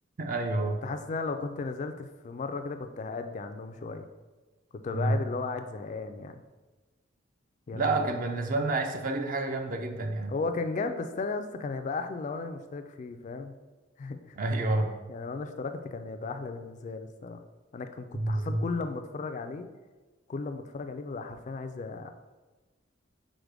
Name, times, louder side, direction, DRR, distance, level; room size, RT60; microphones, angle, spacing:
voice 1, 0.2-0.8 4.9-5.2 7.7-10.3 14.4-15.0 18.1-18.6, right 2 dB, 45° right, 5 dB, 0.4 m, -29 dB
voice 2, 0.8-4.1 4.8-6.4 7.7-8.1 10.3-13.5 14.0-14.4 15.1-17.4 17.7-19.7 20.3-22.1, left 4 dB, 40° left, 8 dB, 0.3 m, -35 dB
4.9 x 2.1 x 4.6 m, 1.2 s
head